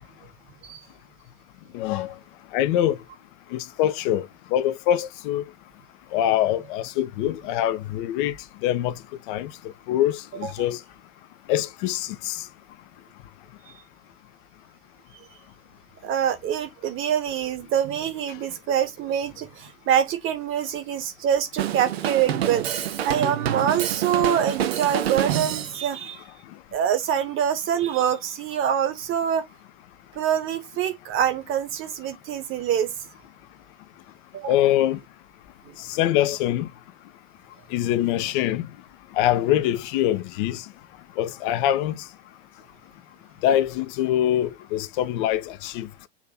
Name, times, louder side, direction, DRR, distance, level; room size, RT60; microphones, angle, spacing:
voice 1, 1.7-2.1 2.5-3.0 3.5-4.3 4.5-5.4 6.1-8.3 8.6-8.9 9.3-9.5 9.9-10.8 11.5-12.4 34.5-35.0 35.9-36.7 37.7-38.7 39.2-40.6 41.2-41.9 43.4-46.1, left 12 dB, 50° left, 0.8 m, -24 dB
voice 2, 16.0-22.6 23.0-26.2 26.7-29.4 30.1-32.9 34.3-34.5 35.6-35.8, right 9 dB, 40° right, 1.5 m, -25 dB
Drum kit, 21.6-25.8, right 10 dB, 65° right, 0.8 m, -27 dB
7.2 x 3.3 x 4.1 m
figure-of-eight pair, 75°, 33 cm